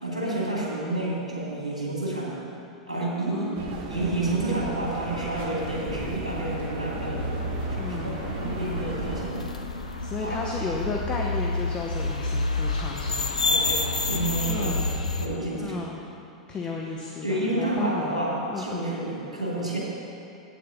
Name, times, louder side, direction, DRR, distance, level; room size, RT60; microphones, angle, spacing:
voice 1, 0.0-2.4 2.9-3.5 3.9-7.2 7.7-9.5 10.2-10.4 12.2-12.3 13.4-14.7 15.2-15.8 17.2-19.8, right 2 dB, 90° right, -5 dB, 2.3 m, -29 dB
voice 2, 3.3-3.8 7.8-8.2 10.0-13.4 14.5-14.9 15.6-16.0 16.5-18.2 18.5-18.9, left 4 dB, 25° left, 0 dB, 0.9 m, -33 dB
sound 1, 3.5-9.3, right 3 dB, 50° right, 1.3 m, -36 dB
sound 2, 5.6-15.3, left 3 dB, 85° left, 0.8 m, -29 dB
8.7 x 7.1 x 6.8 m, 2.8 s
figure-of-eight pair, 95°, 4 cm